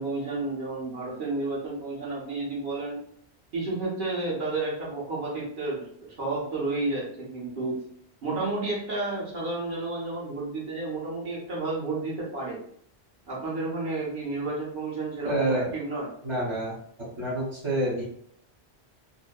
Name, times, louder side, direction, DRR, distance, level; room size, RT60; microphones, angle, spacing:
voice 1, 0.0-3.0 3.5-7.8 8.2-12.6 13.3-16.1, right 2 dB, 55° right, -5 dB, 1.0 m, -31 dB
voice 2, 15.2-15.7 16.2-16.8 17.2-18.0, right 1 dB, 35° right, -9 dB, 0.6 m, -27 dB
2.7 x 2.1 x 2.2 m, 0.65 s
omnidirectional pair, 1.1 m